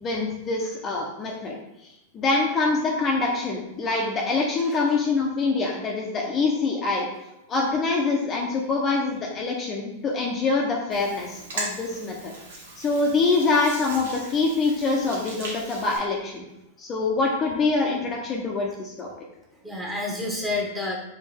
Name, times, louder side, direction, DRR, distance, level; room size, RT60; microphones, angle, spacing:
voice 1, 0.0-1.5 2.1-7.1 7.5-12.3 12.8-16.4 16.8-19.1, left 3 dB, 30° left, -1 dB, 0.8 m, -25 dB
voice 2, 4.6-5.0 19.5-21.0, left 2 dB, 5° right, -2 dB, 1.4 m, -30 dB
Hands, 10.9-16.0, right 2 dB, 75° right, 1.4 m, -38 dB
4.4 x 3.5 x 3.5 m, 0.92 s
hypercardioid pair, 105°, 0 cm